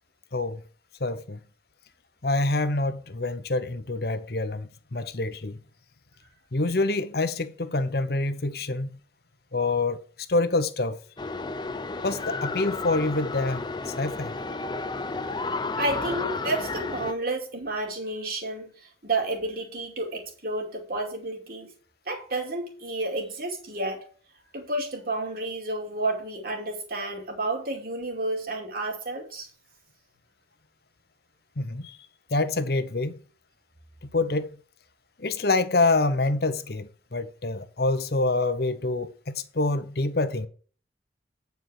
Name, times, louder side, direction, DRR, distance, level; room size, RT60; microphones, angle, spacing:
voice 1, 1.0-1.4 2.2-5.6 6.5-8.9 9.5-10.0 10.3-11.0 12.0-14.3 31.6-32.0 32.3-33.2 34.1-34.6 35.2-40.5, left 2 dB, 60° left, 0.9 m, -26 dB
sound 1, 11.2-17.1, left 3 dB, 25° left, 0.5 m, -32 dB
voice 2, 15.8-21.7 22.1-24.0 24.5-29.5, right 2 dB, 55° right, 2.7 m, -31 dB
9.4 x 4.7 x 6.4 m
head